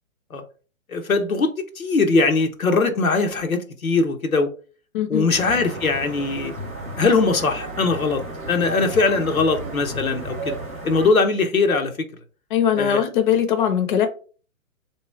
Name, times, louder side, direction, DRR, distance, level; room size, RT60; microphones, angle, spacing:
voice 1, 0.9-4.5 5.1-6.5 7.0-8.2 8.5-10.6 10.8-12.1 12.8-13.0, left 3 dB, 85° left, 1.0 m, -21 dB
voice 2, 4.9-5.3 12.5-14.1, left 9 dB, 35° left, 0.6 m, -20 dB
sound 1, 5.3-11.1, right 2 dB, 10° right, 0.3 m, -33 dB
3.3 x 3.1 x 4.4 m
figure-of-eight pair, 125°, 41 cm